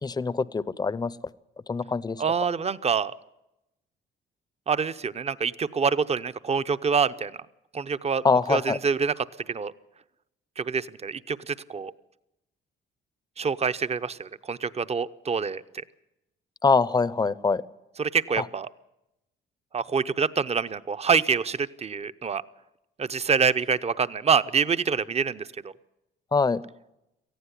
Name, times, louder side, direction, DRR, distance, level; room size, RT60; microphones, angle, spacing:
voice 1, 0.0-1.1 1.7-2.2 8.2-8.8 16.6-17.6 26.3-26.6, left 4 dB, 20° left, 18 dB, 0.7 m, -23 dB
voice 2, 2.2-3.1 4.7-7.3 7.7-8.2 8.5-9.7 10.6-11.9 13.4-15.6 18.0-18.7 19.7-22.4 23.0-25.7, right 6 dB, 30° right, 14 dB, 0.8 m, -26 dB
18.5 x 14.5 x 9.9 m, 0.89 s
cardioid pair, 90°, 20 cm